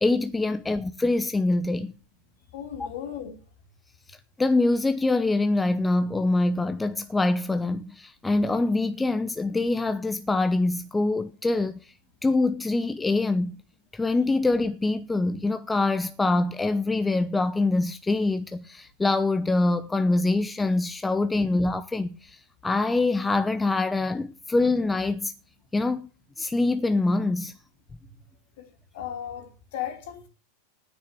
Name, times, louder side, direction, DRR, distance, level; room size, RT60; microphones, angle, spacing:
voice 1, 0.0-1.9 2.8-2.9 4.4-11.8 12.2-13.6 13.9-25.3 25.7-26.1 26.4-27.6, left 2 dB, 10° left, 0.9 m, -24 dB
voice 2, 2.5-3.4 28.6-28.7 28.9-30.3, left 10 dB, 60° left, 3.1 m, -35 dB
9.7 x 9.4 x 8.1 m
figure-of-eight pair, 90°, 0 cm